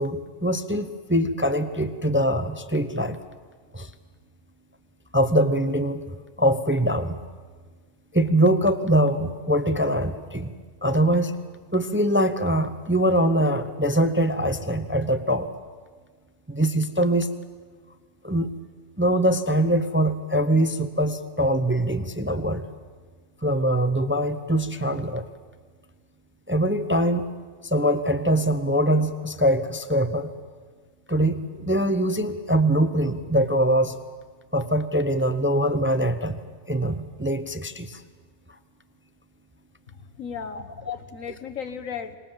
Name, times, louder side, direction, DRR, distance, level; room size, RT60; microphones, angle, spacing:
voice 1, 0.0-3.2 3.7-3.9 5.1-6.0 6.4-7.2 8.1-10.5 10.8-11.3 11.7-15.5 16.5-17.3 18.2-18.5 19.0-22.7 23.4-25.3 26.5-27.2 27.6-30.3 31.1-34.0 34.5-36.4 36.7-38.0 40.9-41.0, right 1 dB, 10° right, 10 dB, 0.6 m, -23 dB
voice 2, 39.9-42.2, left 6 dB, 85° left, 10 dB, 1.7 m, -36 dB
26.5 x 21.0 x 7.3 m, 1.5 s
omnidirectional pair, 1.4 m